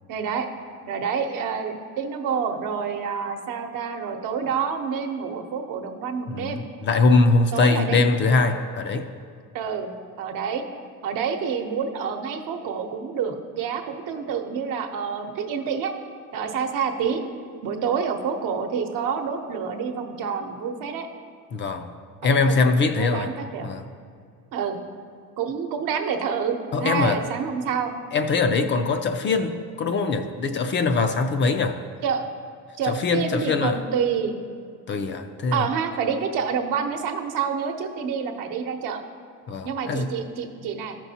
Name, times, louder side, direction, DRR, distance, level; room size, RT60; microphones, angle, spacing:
voice 1, 0.1-0.5 0.9-6.6 7.5-8.0 9.5-10.6 11.0-15.9 16.3-17.2 17.6-21.1 22.2-22.5 22.9-23.7 24.5-24.8 25.4-27.9 28.5-28.6 32.0-32.3 32.8-34.3 35.5-39.0 39.6-41.0, right 6 dB, 70° right, 5 dB, 0.8 m, -28 dB
voice 2, 6.3-9.1 21.5-21.9 22.2-23.3 23.6-23.9 26.7-27.2 28.1-31.8 32.8-33.8 34.9-35.7 39.5-40.1, left 3 dB, 35° left, 7 dB, 0.4 m, -22 dB
13.0 x 5.9 x 2.8 m, 2.3 s
cardioid pair, 145°, 33 cm